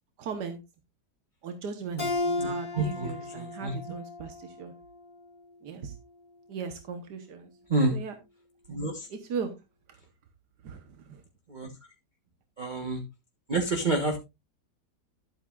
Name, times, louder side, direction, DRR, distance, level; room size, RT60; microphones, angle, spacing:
voice 1, 0.2-0.6 1.4-4.7 5.6-5.9 6.5-7.5 7.9-8.1 9.1-9.5 10.6-11.2, right 6 dB, 85° right, 7 dB, 1.7 m, -38 dB
Keyboard (musical), 2.0-5.2, left 2 dB, 30° left, 2.1 m, -34 dB
voice 2, 2.4-3.1 3.3-3.7 7.7-8.0 8.7-9.1 11.5-11.7 12.6-13.0 13.5-14.2, right 2 dB, 30° right, 2 dB, 1.4 m, -28 dB
12.0 x 8.5 x 2.4 m, 0.24 s
omnidirectional pair, 1.8 m